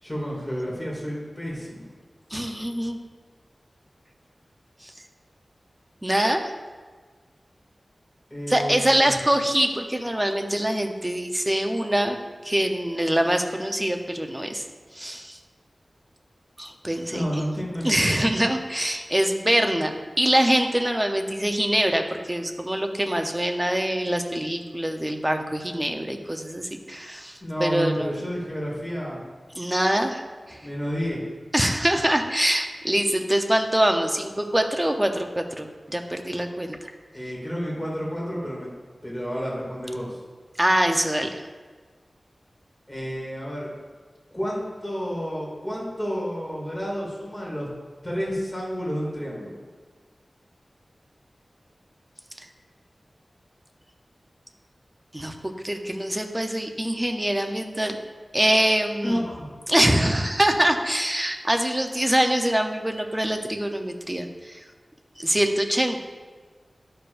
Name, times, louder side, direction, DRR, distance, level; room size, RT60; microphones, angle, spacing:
voice 1, 0.0-1.9 8.3-9.2 16.9-18.2 27.4-29.2 30.6-31.2 37.1-38.7 39.0-40.2 42.9-43.7 44.3-47.7 48.0-49.5 59.0-59.5, equal, 10° left, -5 dB, 2.4 m, -30 dB
voice 2, 2.3-3.0 4.8-4.9 6.0-6.5 8.5-12.2 12.4-14.6 14.9-15.4 16.6-17.2 17.8-28.2 29.6-30.2 30.5-30.6 31.5-36.9 40.6-41.4 55.1-55.3 55.6-58.0 58.3-59.2 59.7-64.6 65.2-66.0, right 1 dB, 15° right, 4 dB, 0.7 m, -24 dB
11.5 x 6.7 x 2.6 m, 1.5 s
wide cardioid pair, 85°, 0 cm